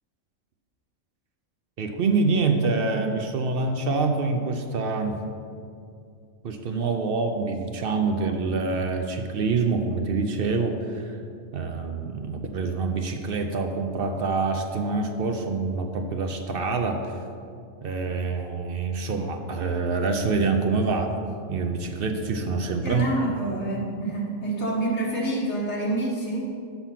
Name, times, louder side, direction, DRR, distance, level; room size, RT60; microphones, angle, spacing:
voice 1, 1.8-5.2 6.4-11.2 11.5-17.1 17.8-21.2 21.5-23.0, right 4 dB, 55° right, 5 dB, 0.7 m, -26 dB
voice 2, 22.8-26.5, right 2 dB, 60° left, -4 dB, 2.0 m, -27 dB
6.9 x 6.0 x 5.7 m, 2.4 s
omnidirectional pair, 1.3 m